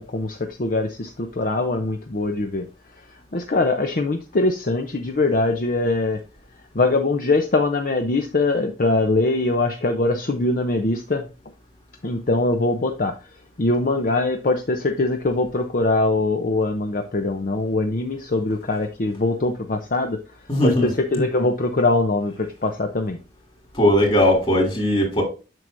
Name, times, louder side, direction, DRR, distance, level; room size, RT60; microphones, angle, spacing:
voice 1, 0.0-2.6 3.3-6.2 6.7-11.3 12.0-13.1 13.6-20.2 20.6-23.2, left 2 dB, 50° left, 0.7 m, -22 dB
voice 2, 20.5-20.9 23.7-25.2, left 1 dB, 30° left, 2.9 m, -18 dB
7.6 x 6.2 x 2.6 m
head